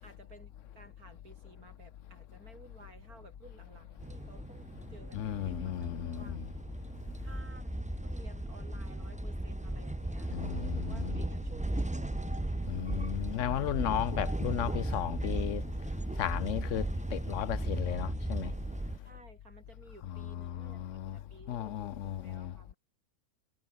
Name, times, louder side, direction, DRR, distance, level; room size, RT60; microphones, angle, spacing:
voice 1, 0.0-6.4 7.2-12.4 17.9-18.3 19.0-20.8 21.1-22.8, right 2 dB, 75° right, 6.1 m, -56 dB
sound 1, 2.4-10.3, right 1 dB, 40° right, 7.9 m, -65 dB
sound 2, 4.0-19.0, right 1 dB, 10° right, 0.4 m, -36 dB
voice 2, 5.1-6.5 10.3-11.2 12.7-15.6 16.2-16.9 17.1-18.5 20.1-21.2 21.5-22.5, left 11 dB, 60° left, 1.0 m, -35 dB
sound 3, 10.3-13.1, right 10 dB, 60° right, 1.1 m, -47 dB
omnidirectional pair, 1.6 m